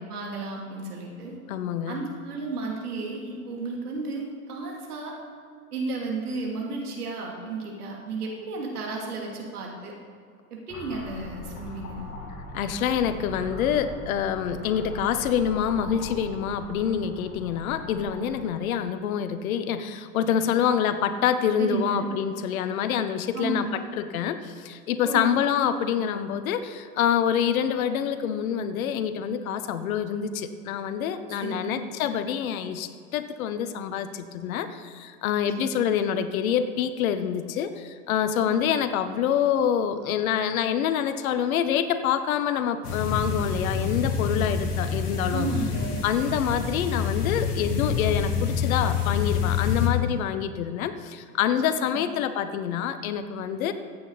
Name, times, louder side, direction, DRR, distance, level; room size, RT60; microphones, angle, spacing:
voice 1, 0.1-1.4 1.9-5.1 5.7-9.9 10.5-12.1 21.6-22.1 23.3-23.8 25.0-25.3 31.3-31.8 35.6-35.8 38.5-38.6 45.3-46.0 51.6-52.1, right 3 dB, 80° right, -1 dB, 2.8 m, -33 dB
voice 2, 1.5-2.0 12.5-45.5 46.0-53.7, left 8 dB, 65° left, 11 dB, 1.0 m, -26 dB
sound 1, 10.7-18.4, left 2 dB, 35° left, 2.7 m, -40 dB
sound 2, 42.8-49.9, left 6 dB, 80° left, 1.9 m, -27 dB
15.0 x 8.7 x 4.1 m, 2.2 s
hypercardioid pair, 90°, 45 cm